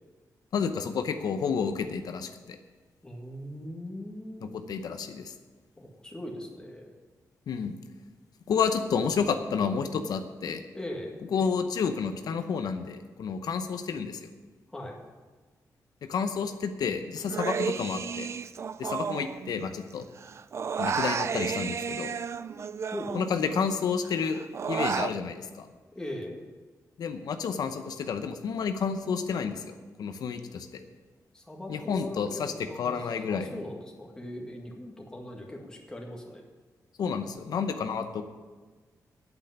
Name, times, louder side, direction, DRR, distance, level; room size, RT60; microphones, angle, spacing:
voice 1, 0.5-2.6 4.4-5.3 7.5-7.7 8.5-10.6 11.3-14.3 16.1-18.3 18.8-20.1 20.8-22.1 23.1-24.4 24.7-25.7 27.0-30.8 31.7-32.5 32.8-33.6 37.0-38.2, left 6 dB, 85° left, 7 dB, 0.8 m, -30 dB
voice 2, 3.0-4.5 5.8-7.0 10.7-11.2 14.7-15.0 22.9-23.2 26.0-26.4 31.3-36.4, left 1 dB, 10° left, 1 dB, 1.8 m, -40 dB
Human voice, 17.3-19.9 20.2-23.7 24.0-25.1, right 6 dB, 45° right, 0.4 m, -32 dB
8.8 x 8.3 x 9.4 m, 1.4 s
wide cardioid pair, 150°, 7 cm